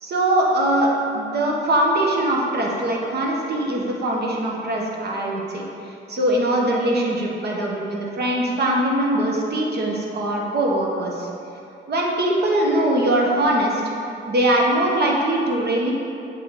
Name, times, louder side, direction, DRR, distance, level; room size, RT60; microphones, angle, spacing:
voice 1, 0.0-11.3 11.9-13.9 14.3-15.9, right 1 dB, 55° right, -2 dB, 1.1 m, -22 dB
7.6 x 3.3 x 3.8 m, 2.7 s
cardioid pair, 90°, 20 cm